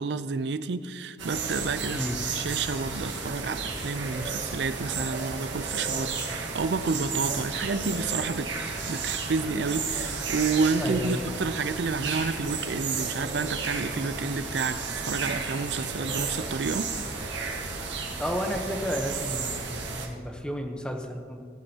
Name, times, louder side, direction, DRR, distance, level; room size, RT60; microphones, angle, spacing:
voice 1, 0.0-2.0 2.3-8.5 8.9-16.9, right 4 dB, 70° right, 0.5 m, -30 dB
sound 1, 1.2-20.1, right 4 dB, 90° right, 1.5 m, -33 dB
voice 2, 1.9-2.2 10.8-11.2 18.2-21.4, equal, 5° left, 0.8 m, -32 dB
17.0 x 10.0 x 2.8 m
head